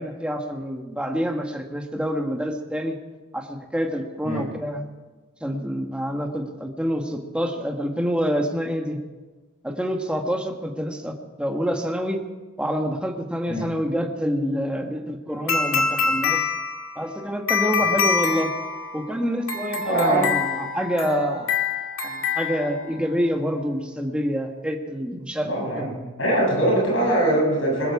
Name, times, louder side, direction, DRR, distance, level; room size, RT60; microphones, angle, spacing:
voice 1, 0.0-3.0 3.3-4.9 5.4-9.0 9.6-12.2 12.6-16.4 16.9-18.5 18.9-21.6 22.0-25.8, equal, 5° right, 3 dB, 1.4 m, -27 dB
sound 1, 15.5-23.2, left 5 dB, 90° left, 2.2 m, -26 dB
voice 2, 19.8-20.3 25.4-25.9 26.2-27.9, right 1 dB, 70° left, -2 dB, 7.4 m, -22 dB
21.0 x 14.0 x 4.8 m, 1.3 s
head